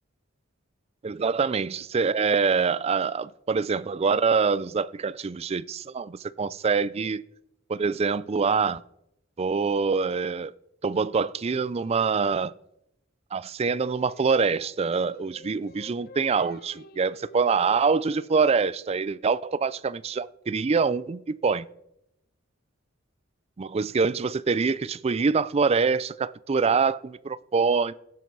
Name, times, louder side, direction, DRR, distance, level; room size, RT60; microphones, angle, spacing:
voice 1, 1.0-7.2 7.7-8.8 9.4-10.5 10.8-12.5 13.3-21.7 23.6-27.9, right 5 dB, 30° right, 0.4 m, -25 dB
Singing, 13.7-18.9, left 3 dB, 50° left, 0.9 m, -49 dB
16.5 x 7.7 x 5.4 m
head